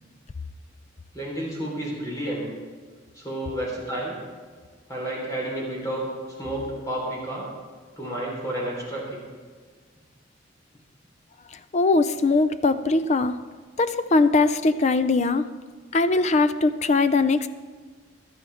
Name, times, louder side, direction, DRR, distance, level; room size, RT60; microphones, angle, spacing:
voice 1, 1.1-2.5 3.2-4.2 4.9-6.1 6.4-7.5 8.0-9.2, right 1 dB, 20° left, -3 dB, 3.7 m, -30 dB
voice 2, 11.7-13.4 13.8-15.5 15.9-17.5, left 3 dB, 35° left, 12 dB, 0.4 m, -21 dB
16.0 x 11.5 x 3.5 m, 1.5 s
head